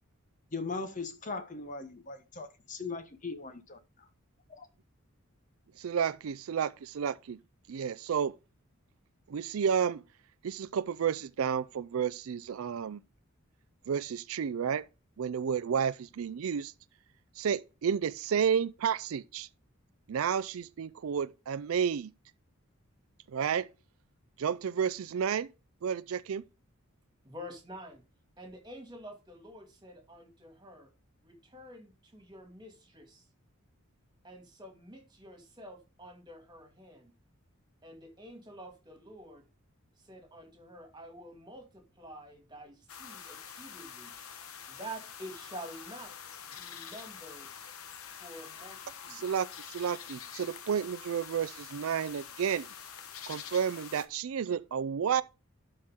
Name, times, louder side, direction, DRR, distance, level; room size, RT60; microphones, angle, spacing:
voice 1, 0.5-3.8, left 4 dB, 35° left, 1.1 m, -39 dB
voice 2, 5.8-7.4 7.7-8.3 9.3-10.0 10.4-13.0 13.9-14.8 15.2-16.7 17.4-19.5 20.1-22.1 23.3-23.7 24.4-25.5 25.8-26.4 49.1-52.7 53.3-55.2, right 7 dB, 75° right, 0.4 m, -31 dB
voice 3, 27.2-28.0 28.4-30.9 31.2-33.2 34.2-37.1 37.8-39.4 40.0-44.1 44.7-46.1 46.4-47.5 48.2-49.2, right 1 dB, 20° right, 2.1 m, -48 dB
sound 1, 42.9-54.1, left 8 dB, 90° left, 1.1 m, -46 dB
12.0 x 4.4 x 3.6 m
head